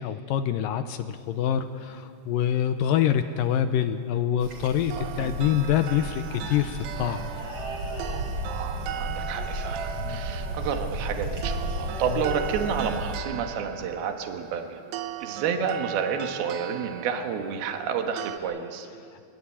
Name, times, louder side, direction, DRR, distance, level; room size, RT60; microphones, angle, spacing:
voice 1, 0.0-7.3 10.0-10.3, left 10 dB, 75° left, 9 dB, 2.2 m, -26 dB
sound 1, 4.4-13.2, right 1 dB, 40° right, 3.9 m, -33 dB
voice 2, 4.9-5.3 8.4-14.8 15.2-18.9, right 6 dB, 70° right, 4 dB, 3.4 m, -30 dB
sound 2, 4.9-18.4, right 11 dB, 90° right, 3.2 m, -39 dB
23.5 x 22.5 x 8.7 m, 2.4 s
omnidirectional pair, 4.7 m